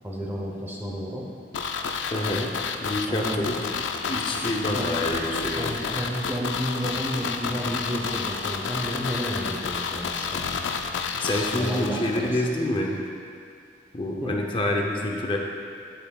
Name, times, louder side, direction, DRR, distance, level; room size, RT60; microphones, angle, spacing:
voice 1, 0.0-1.2 3.1-3.5 4.7-5.0 5.6-10.8 11.5-12.4 14.2-14.3, equal, 10° right, -2 dB, 0.8 m, -31 dB
sound 1, 1.5-12.5 12.8-12.9, left 5 dB, 90° left, 0.4 m, -30 dB
voice 2, 2.1-2.5 2.8-3.5 4.1-5.9 11.2-12.9 13.9-15.4, left 1 dB, 25° left, 1 dB, 0.6 m, -27 dB
8.6 x 8.3 x 2.4 m, 2.3 s
head